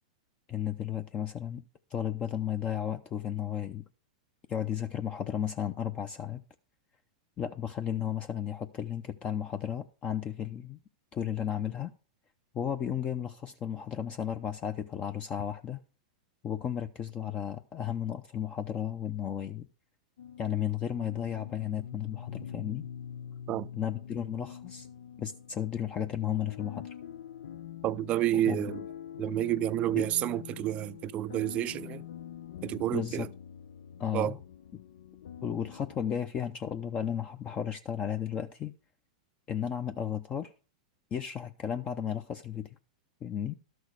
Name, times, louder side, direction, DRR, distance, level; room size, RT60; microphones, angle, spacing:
voice 1, 0.5-1.6 1.9-3.8 4.5-6.4 7.4-10.8 11.1-11.9 12.5-15.8 16.4-19.7 20.4-22.9 23.7-24.9 25.2-26.9 28.3-28.7 29.9-30.1 32.9-33.3 34.0-34.4 35.4-38.7 39.5-40.5 41.1-42.8 43.2-43.5, left 9 dB, 30° left, 0.7 m, -34 dB
sound 1, 20.2-36.1, left 9 dB, 75° left, 0.6 m, -45 dB
voice 2, 27.8-28.8 29.2-32.0 32.6-33.3 34.1-34.3, right 13 dB, 35° right, 0.4 m, -29 dB
12.5 x 6.3 x 4.8 m
hypercardioid pair, 115°, 4 cm